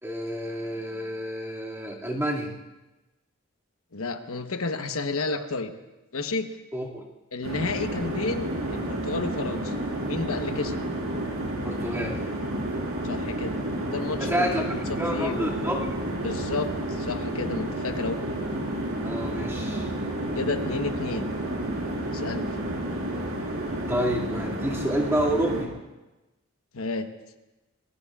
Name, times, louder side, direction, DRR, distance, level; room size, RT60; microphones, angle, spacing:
voice 1, 0.0-2.6 6.7-7.0 11.6-12.2 14.2-15.9 19.0-19.9 23.9-25.7, equal, 10° right, -3 dB, 2.2 m, -29 dB
voice 2, 3.9-5.7 6.1-6.5 7.3-9.7 10.1-10.8 13.0-13.6 13.9-15.5 16.2-18.2 20.3-21.3 22.1-22.6 26.7-27.1, left 3 dB, 85° left, 7 dB, 1.1 m, -31 dB
sound 1, 7.4-25.6, right 1 dB, 85° right, 4.1 m, -31 dB
28.0 x 21.0 x 2.4 m, 1.0 s
head